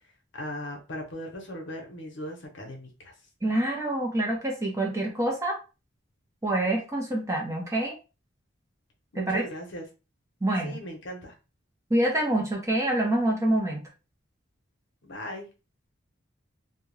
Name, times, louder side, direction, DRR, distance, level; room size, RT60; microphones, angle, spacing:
voice 1, 0.3-2.9 9.1-9.9 10.6-11.3 15.0-15.4, equal, 70° left, 2 dB, 0.8 m, -38 dB
voice 2, 3.4-5.6 6.4-8.0 9.2-9.4 10.4-10.8 11.9-13.8, right 1 dB, 15° right, -1 dB, 0.6 m, -26 dB
2.3 x 2.2 x 3.1 m, 0.30 s
head